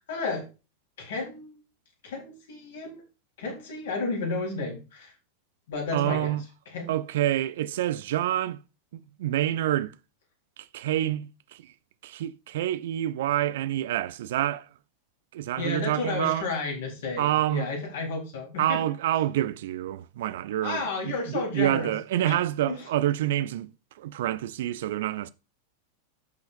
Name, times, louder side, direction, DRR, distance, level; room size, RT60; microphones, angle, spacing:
voice 1, 0.1-0.5 1.0-1.6 2.0-3.0 3.4-5.1 5.7-6.3 6.7-6.9 15.6-18.8 20.6-21.9 22.3-22.4 22.7-22.8, left 3 dB, 60° left, 3.9 m, -32 dB
voice 2, 5.9-6.4 6.9-8.6 8.9-9.9 10.6-11.7 12.0-14.7 15.3-16.5 17.2-17.7 18.6-23.7 24.0-25.3, right 13 dB, 55° right, 0.6 m, -27 dB
14.0 x 5.7 x 2.6 m
figure-of-eight pair, 90°, 0 cm